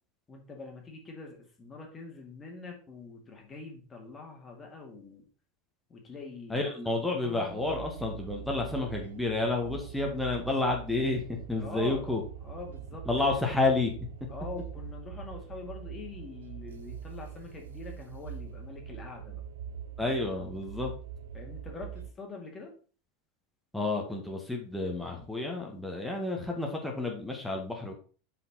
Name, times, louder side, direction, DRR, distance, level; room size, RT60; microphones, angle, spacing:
voice 1, 0.3-5.2 5.9-6.7 7.2-7.7 11.5-12.1 12.4-13.4 14.3-19.4 21.3-22.7, left 4 dB, 20° left, 1 dB, 2.3 m, -44 dB
voice 2, 6.5-12.2 13.1-13.9 20.0-20.9 23.7-27.9, left 2 dB, 5° left, 0 dB, 1.8 m, -30 dB
sound 1, 7.5-22.1, right 9 dB, 70° right, 0.7 m, -43 dB
5.7 x 5.2 x 4.3 m, 0.39 s
figure-of-eight pair, 80°, 0 cm